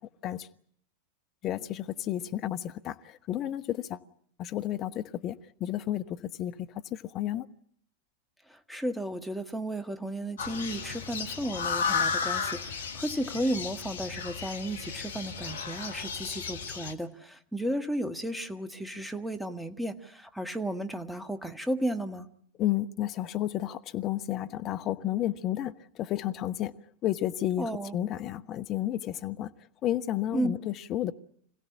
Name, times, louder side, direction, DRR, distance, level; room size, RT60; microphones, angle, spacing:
voice 1, 1.4-4.0 4.4-7.5 22.6-26.7 27.0-29.5 29.8-31.1, left 12 dB, 35° left, 1.1 m, -32 dB
voice 2, 8.5-22.3 27.6-27.9 30.3-30.5, right 1 dB, ahead, 1.5 m, -34 dB
sound 1, 10.4-16.9, left 6 dB, 65° left, 1.7 m, -34 dB
26.0 x 16.5 x 9.9 m
figure-of-eight pair, 90°, 0 cm